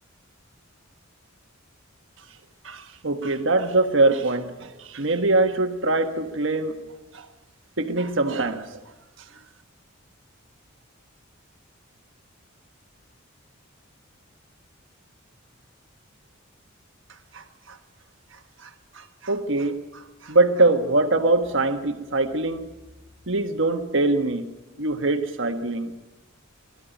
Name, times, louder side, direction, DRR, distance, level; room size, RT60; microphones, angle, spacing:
voice 1, 2.6-6.8 7.1-7.3 7.8-8.8 17.3-17.8 18.6-22.7 23.3-24.5 24.8-25.9, right 2 dB, 65° right, 1.4 m, -23 dB
21.0 x 13.5 x 9.2 m
head